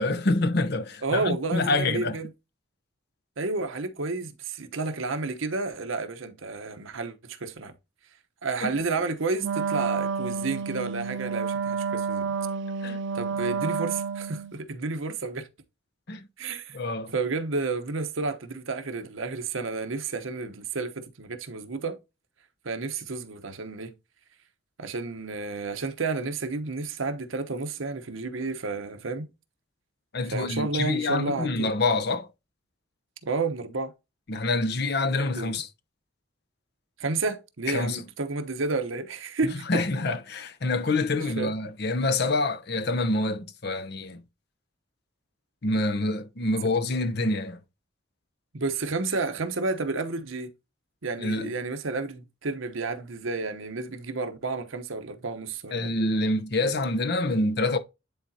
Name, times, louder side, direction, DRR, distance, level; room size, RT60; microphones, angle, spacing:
voice 1, 0.0-2.2 8.6-8.7 12.8-13.0 16.1-16.3 16.7-17.1 30.1-32.3 34.3-35.7 37.7-38.0 39.7-44.2 45.6-47.6 51.2-51.5 55.7-57.8, left 2 dB, 50° left, 0.8 m, -26 dB
voice 2, 1.0-2.3 3.4-7.7 8.4-12.3 13.1-15.5 16.4-16.8 17.1-22.0 22.6-23.9 24.8-29.3 30.3-31.7 33.2-33.9 35.3-35.6 37.0-39.6 41.2-41.5 48.5-50.5 51.0-56.0, right 3 dB, 75° right, 1.0 m, -31 dB
Wind instrument woodwind instrument, 9.4-14.5, right 5 dB, 60° right, 0.5 m, -30 dB
10.0 x 4.0 x 2.7 m
head